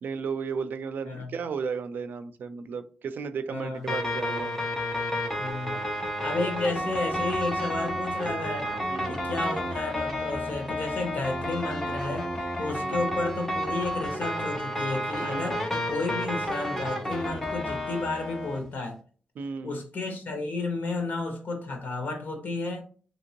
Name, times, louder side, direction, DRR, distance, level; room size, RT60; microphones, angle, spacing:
voice 1, 0.0-4.5 5.7-5.8 8.9-9.2 12.8-13.1 15.2-15.6 19.4-19.8, right 5 dB, 90° right, 11 dB, 0.4 m, -34 dB
voice 2, 3.5-3.9 5.4-5.8 6.2-8.7 9.1-12.3 12.6-19.0 19.6-22.8, left 3 dB, 70° left, 3 dB, 1.2 m, -32 dB
sound 1, 3.9-18.6, equal, 10° left, 0.7 m, -31 dB
3.6 x 2.9 x 2.9 m, 0.40 s
wide cardioid pair, 160°, 3 cm